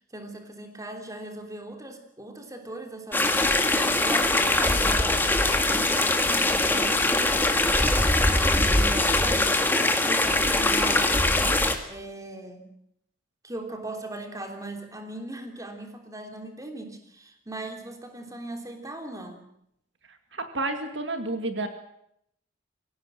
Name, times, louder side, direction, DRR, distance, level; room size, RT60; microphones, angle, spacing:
voice 1, 0.1-3.6 4.0-7.8 8.2-11.3 11.9-12.7 13.4-19.5, right 2 dB, 15° right, 4 dB, 3.2 m, -39 dB
sound 1, 3.1-11.7, left 2 dB, 10° left, 2.0 m, -22 dB
voice 2, 20.3-21.7, right 2 dB, 60° right, 6 dB, 2.2 m, -30 dB
24.0 x 17.0 x 9.1 m, 0.76 s
head